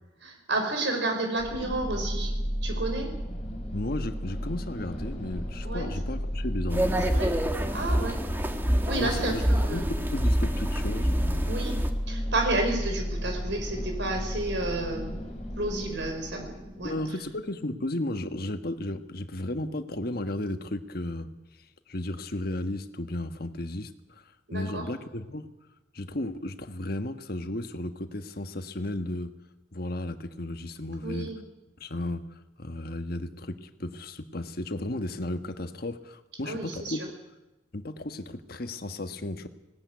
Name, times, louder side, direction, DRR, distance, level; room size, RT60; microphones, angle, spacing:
voice 1, 0.2-2.3 2.6-3.1 5.6-5.9 7.0-7.3 7.7-8.2 8.9-9.8 11.5-11.8 12.1-15.3 15.6-16.9 24.5-24.8 31.0-31.4 36.4-37.1, right 2 dB, 65° right, 4 dB, 5.1 m, -31 dB
sound 1, 1.4-17.3, equal, 35° left, 5.5 m, -33 dB
voice 2, 3.7-7.1 9.0-11.4 16.8-21.4 21.9-25.5 25.9-29.4 29.7-31.3 31.8-37.2 37.7-39.5, left 1 dB, 50° left, 8 dB, 1.4 m, -34 dB
sound 2, 6.7-11.9, equal, 10° right, 1.4 m, -27 dB
19.0 x 17.5 x 9.5 m, 1.0 s
head